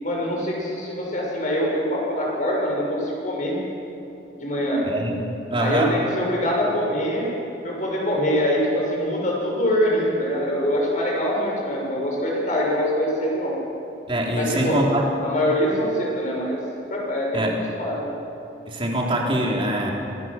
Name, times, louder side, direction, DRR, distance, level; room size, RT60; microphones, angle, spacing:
voice 1, 0.0-3.6 4.4-4.8 5.5-7.3 7.6-13.6 14.3-14.8 15.2-16.6 16.9-17.4 17.7-18.1, equal, 45° left, -2 dB, 6.6 m, -24 dB
voice 2, 4.8-5.2 5.5-6.0 14.1-15.1 17.3-17.5 18.7-19.9, right 1 dB, 30° right, -1 dB, 3.5 m, -23 dB
25.5 x 20.5 x 6.1 m, 2.8 s
head